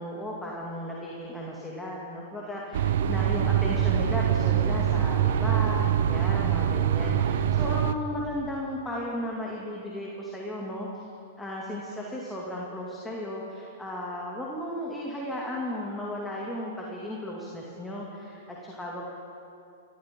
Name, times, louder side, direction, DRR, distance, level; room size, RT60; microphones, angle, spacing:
voice 1, 0.0-10.9 11.4-19.0, left 1 dB, 10° left, -4 dB, 2.4 m, -35 dB
sound 1, 2.7-8.0, right 9 dB, 65° right, 0.7 m, -24 dB
27.0 x 13.5 x 3.8 m, 2.7 s
hypercardioid pair, 110°, 0 cm